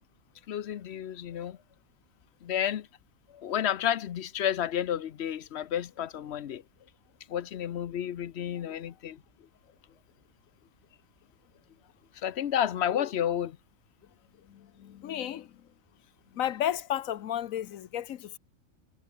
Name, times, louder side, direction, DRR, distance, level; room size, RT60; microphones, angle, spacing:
voice 1, 0.5-1.6 2.4-2.9 3.3-6.6 7.3-9.2 12.2-13.6, left 10 dB, 60° left, 0.9 m, -31 dB
voice 2, 14.5-15.6 16.3-18.4, left 11 dB, 85° left, 1.2 m, -33 dB
omnidirectional pair, 1.4 m